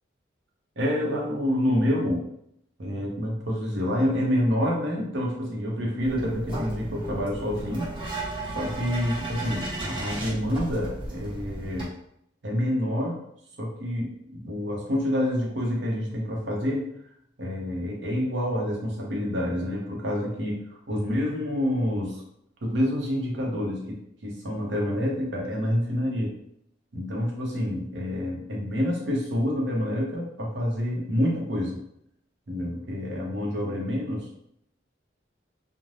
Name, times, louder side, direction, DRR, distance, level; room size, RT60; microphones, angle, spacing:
voice 1, 0.8-2.2 2.8-7.9 8.5-11.9 12.4-13.2 13.6-16.9 17.4-22.2 22.6-26.3 26.9-31.8 32.5-34.3, equal, 85° right, -1 dB, 0.8 m, -27 dB
sound 1, 6.0-11.9, right 1 dB, 30° right, 0.9 m, -34 dB
2.6 x 2.1 x 3.1 m, 0.73 s
head